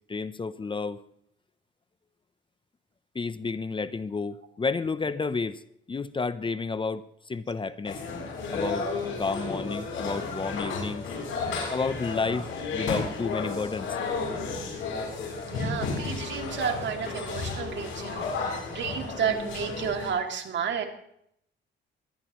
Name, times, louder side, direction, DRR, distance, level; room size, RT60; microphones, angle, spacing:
voice 1, 0.1-1.0 3.1-5.6 5.9-7.0 7.3-8.0 8.5-8.9 9.2-11.1 11.7-13.9, left 4 dB, 25° left, 14 dB, 0.7 m, -31 dB
sound 1, 7.9-20.1, left 4 dB, 85° left, 7.3 m, -33 dB
voice 2, 15.5-20.8, right 7 dB, 65° right, 4 dB, 2.6 m, -31 dB
21.5 x 17.5 x 3.1 m, 0.72 s
cardioid pair, 90°, 20 cm